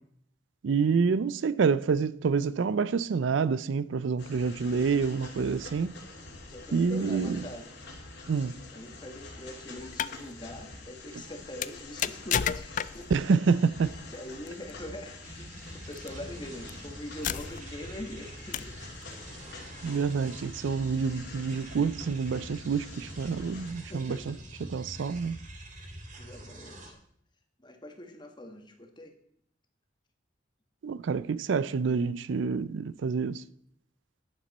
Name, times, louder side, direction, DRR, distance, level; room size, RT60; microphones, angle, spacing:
voice 1, 0.6-6.0 6.7-7.4 8.3-8.6 13.1-14.0 19.8-24.4 24.7-25.4 30.8-33.4, right 5 dB, 75° right, 0.4 m, -27 dB
sound 1, 4.2-23.7, left 2 dB, 60° left, 2.4 m, -46 dB
voice 2, 6.5-7.6 8.7-13.1 14.1-18.8 19.9-20.0 23.8-24.4 25.8-27.0 27.6-29.1, left 1 dB, 25° left, 1.5 m, -43 dB
sound 2, 9.8-10.2 11.6-13.2 14.5-14.7 15.9-16.1 16.7-16.8 17.2-17.8 18.5-18.8, left 9 dB, 40° left, 0.4 m, -31 dB
sound 3, 15.2-26.9, right 1 dB, 40° right, 2.2 m, -46 dB
11.0 x 10.5 x 4.2 m
head